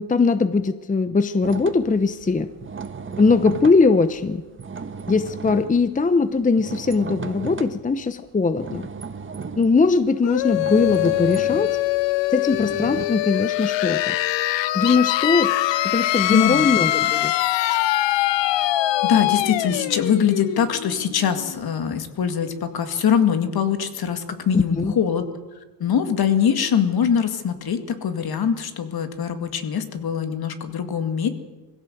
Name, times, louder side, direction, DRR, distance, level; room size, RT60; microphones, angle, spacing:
voice 1, 0.0-2.5 3.2-4.4 5.1-8.9 9.6-11.8 12.3-14.2 14.7-15.5 15.9-17.3 24.5-24.9, left 4 dB, 20° left, 12 dB, 0.8 m, -20 dB
sound 1, 1.4-8.0 8.6-13.1, right 5 dB, 25° right, 1.4 m, -35 dB
sound 2, 10.2-21.8, left 16 dB, 80° left, 0.7 m, -23 dB
voice 2, 16.3-16.7 19.0-25.2 25.8-31.3, left 8 dB, 55° left, 8 dB, 2.0 m, -23 dB
21.0 x 16.0 x 7.7 m, 1.3 s
cardioid pair, 85°, 44 cm